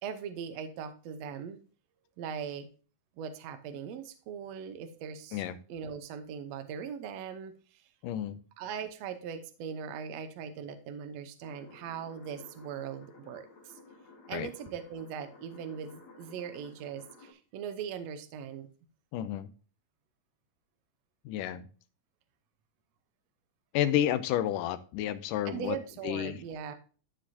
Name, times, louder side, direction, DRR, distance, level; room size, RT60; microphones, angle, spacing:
voice 1, 0.0-1.6 2.2-2.7 3.2-5.4 5.7-7.8 8.6-13.7 14.3-18.7 25.5-26.7, right 7 dB, 70° right, 8 dB, 1.8 m, -40 dB
voice 2, 8.0-8.4 14.3-14.5 19.1-19.5 21.3-21.7 23.7-25.8 26.0-26.4, left 11 dB, 80° left, 12 dB, 2.2 m, -31 dB
sound 1, 11.4-17.3, left 3 dB, 60° left, 2.9 m, -55 dB
13.5 x 4.8 x 2.8 m, 0.37 s
omnidirectional pair, 3.8 m